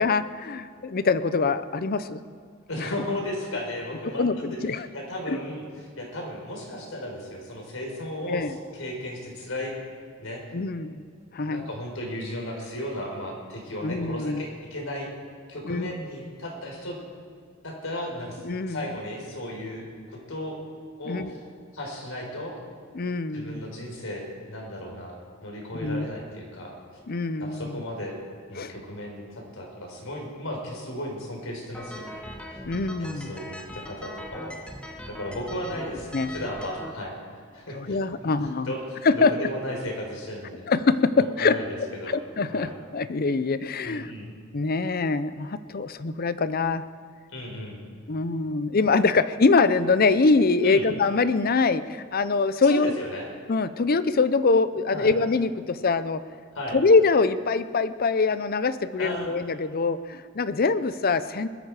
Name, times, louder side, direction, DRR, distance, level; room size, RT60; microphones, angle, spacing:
voice 1, 0.0-2.2 2.8-2.9 4.2-4.9 5.3-5.4 8.3-8.6 10.5-11.0 11.3-11.7 13.8-14.5 15.6-15.9 18.4-18.9 21.1-21.3 22.9-23.6 25.8-26.1 27.1-27.8 28.6-28.7 32.6-33.3 36.1-36.3 37.7-38.7 39.0-39.3 40.7-41.6 42.1-44.1 44.5-46.8 48.1-52.9 53.5-56.2 56.7-61.5, left 4 dB, 45° left, 14 dB, 0.6 m, -24 dB
voice 2, 2.7-4.6 4.9-5.7 6.0-8.4 8.7-9.7 10.2-10.4 11.4-15.1 15.5-17.0 17.6-18.4 18.7-20.6 21.0-21.4 21.7-22.5 23.3-25.1 25.4-26.7 27.4-28.1 28.5-32.2 33.0-34.6 35.1-37.1 37.5-40.7 41.4-42.1 42.5-42.8 43.8-44.3 47.3-47.8 50.6-50.9 52.7-53.3 54.9-55.2 56.5-56.8 59.0-59.3, left 1 dB, 85° left, 0 dB, 4.3 m, -35 dB
sound 1, 31.7-36.9, equal, 5° left, 1.5 m, -40 dB
21.0 x 13.0 x 4.9 m, 2.1 s
head